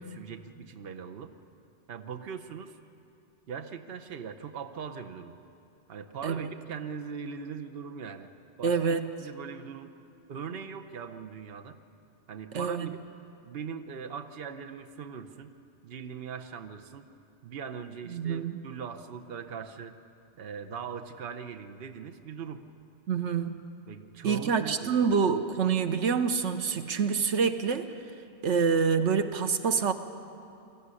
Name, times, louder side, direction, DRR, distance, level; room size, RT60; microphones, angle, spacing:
voice 1, 0.0-1.3 1.9-2.7 3.5-5.4 5.9-8.3 8.6-9.9 10.3-11.8 12.3-13.0 13.4-15.5 15.8-17.1 17.4-20.0 20.3-22.6 23.9-25.1, right 6 dB, 60° right, 6 dB, 1.0 m, -40 dB
voice 2, 8.6-9.1 12.5-12.9 18.1-18.6 23.1-23.6 24.2-27.9 28.4-29.9, right 6 dB, 85° right, 8 dB, 1.2 m, -26 dB
22.5 x 14.5 x 9.8 m, 2.6 s
omnidirectional pair, 1.2 m